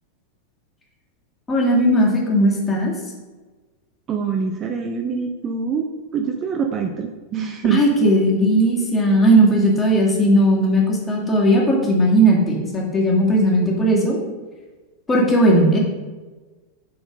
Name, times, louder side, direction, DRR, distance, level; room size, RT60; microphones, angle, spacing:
voice 1, 1.5-2.9 7.6-14.2 15.1-15.8, right 1 dB, 15° left, -3 dB, 1.8 m, -17 dB
voice 2, 4.1-5.9 6.1-7.8, right 6 dB, 30° right, 4 dB, 0.5 m, -24 dB
6.7 x 4.4 x 5.0 m, 1.3 s
figure-of-eight pair, 90°, 0 cm